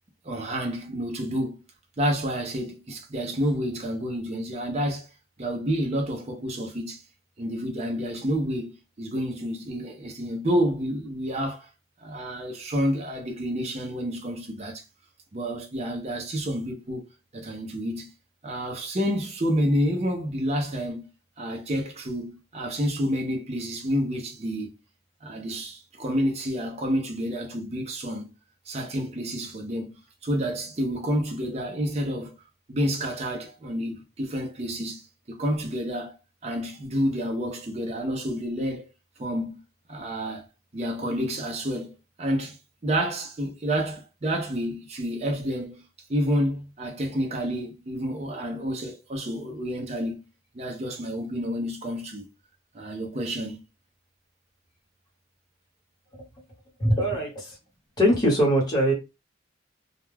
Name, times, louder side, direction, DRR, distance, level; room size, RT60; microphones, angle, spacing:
voice 1, 0.2-1.6 2.0-5.1 5.4-7.0 7.4-8.7 9.0-11.7 12.0-14.8 15.3-17.0 17.3-18.1 18.4-21.1 21.4-24.8 25.2-28.3 28.7-32.3 32.7-36.2 36.4-38.9 39.2-39.6 39.9-40.4 40.7-45.8 46.1-50.3 50.5-52.3 52.7-53.6, equal, 30° right, 0.5 m, -29 dB
voice 2, 56.8-57.6 58.0-58.9, equal, 20° left, 1.0 m, -22 dB
2.3 x 2.2 x 3.2 m
head